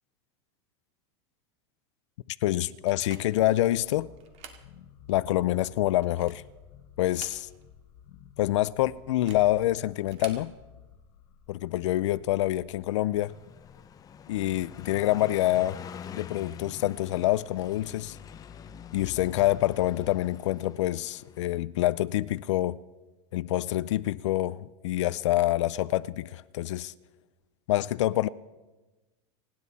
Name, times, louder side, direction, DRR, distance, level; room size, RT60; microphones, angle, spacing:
voice 1, 2.4-4.1 5.1-6.4 7.0-7.5 8.4-10.5 11.5-13.3 14.3-15.8 16.1-18.2 18.9-22.8 23.3-26.9 27.7-28.3, left 15 dB, 85° left, 0.5 m, -26 dB
sound 1, 2.9-3.5 4.2-4.7 5.1-5.2 5.9-6.5 7.0-7.8 8.1-8.2 9.1-9.5 10.0-10.5, right 7 dB, 45° right, 2.0 m, -48 dB
sound 2, 3.4-14.2, left 8 dB, 65° left, 1.4 m, -55 dB
Car passing by, 13.1-21.6, left 8 dB, 25° left, 0.7 m, -45 dB
29.0 x 10.5 x 4.2 m
supercardioid pair, 130°, 15 cm